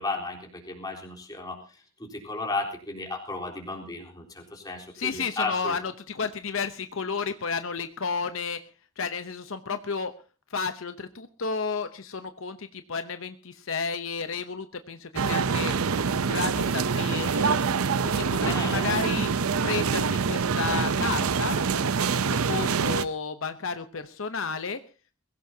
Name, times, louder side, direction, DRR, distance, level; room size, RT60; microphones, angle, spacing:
voice 1, 0.0-1.6 2.0-5.8 18.4-19.0, left 2 dB, 20° left, 0 dB, 3.8 m, -34 dB
voice 2, 4.9-8.6 9.0-10.1 10.5-15.8 16.2-17.6 18.0-19.3 19.6-24.8, left 5 dB, 65° left, 9 dB, 0.8 m, -32 dB
sound 1, 15.2-23.1, right 5 dB, 90° right, 0.7 m, -25 dB
22.0 x 16.0 x 2.8 m, 0.37 s
head